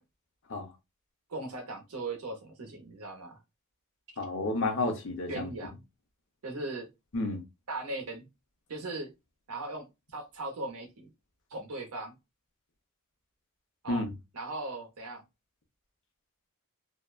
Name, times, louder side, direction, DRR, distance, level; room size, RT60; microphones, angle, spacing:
voice 1, 1.3-3.4 5.3-5.8 6.4-6.9 7.7-8.3 8.7-9.1 9.5-9.8 10.1-11.1 11.5-12.1 13.8-14.0 14.3-15.2, right 2 dB, 85° right, 0.9 m, -38 dB
voice 2, 4.2-5.5 7.1-7.4 13.9-14.1, left 2 dB, 60° left, 0.7 m, -31 dB
2.7 x 2.2 x 2.3 m
head